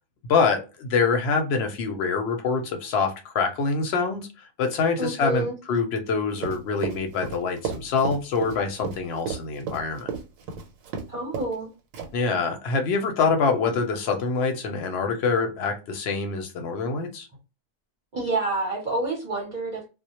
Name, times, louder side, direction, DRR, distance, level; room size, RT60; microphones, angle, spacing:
voice 1, 0.3-10.1 12.1-17.3, left 4 dB, 60° left, 0.7 m, -25 dB
voice 2, 5.0-5.6 11.1-11.7 18.1-19.9, right 2 dB, 45° right, 0.7 m, -28 dB
Run, 6.4-11.1 11.3-11.6 11.9-12.3, right 6 dB, 85° right, 1.0 m, -32 dB
2.1 x 2.0 x 2.8 m
omnidirectional pair, 1.4 m